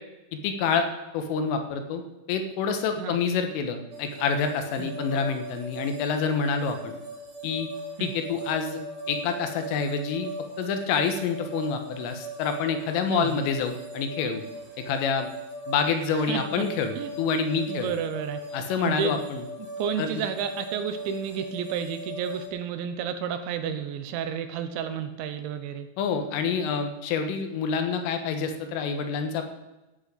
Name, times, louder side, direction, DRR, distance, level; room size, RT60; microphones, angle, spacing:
voice 1, 0.4-0.9 1.1-2.0 2.3-7.0 7.4-7.7 8.0-8.8 9.1-10.3 10.6-14.4 14.8-15.3 15.7-17.9 18.5-19.4 20.0-20.2 26.0-29.4, left 5 dB, 90° left, 7 dB, 4.0 m, -27 dB
sound 1, 3.9-22.5, right 1 dB, 45° right, 4.4 m, -39 dB
voice 2, 16.1-16.7 17.0-17.1 17.7-19.1 19.8-25.9, right 8 dB, 75° right, 9 dB, 3.2 m, -31 dB
14.5 x 7.8 x 8.4 m, 1.0 s
omnidirectional pair, 5.6 m